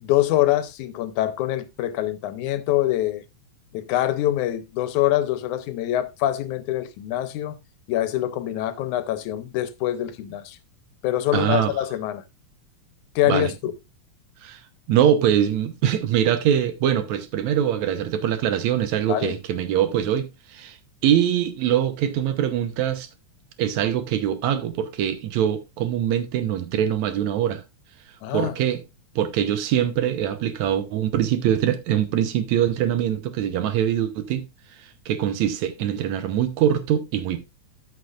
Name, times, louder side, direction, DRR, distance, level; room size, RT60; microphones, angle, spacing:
voice 1, 0.0-3.2 3.7-7.6 7.9-10.6 11.0-12.2 13.2-13.7 19.0-19.4 28.2-28.5, left 13 dB, 85° left, 2.2 m, -24 dB
voice 2, 11.3-11.7 13.2-13.5 14.4-14.6 14.9-20.8 21.0-23.1 23.6-27.6 28.3-28.8 29.2-34.5 35.1-37.4, right 10 dB, 75° right, 2.2 m, -23 dB
13.5 x 6.2 x 2.4 m
omnidirectional pair, 3.4 m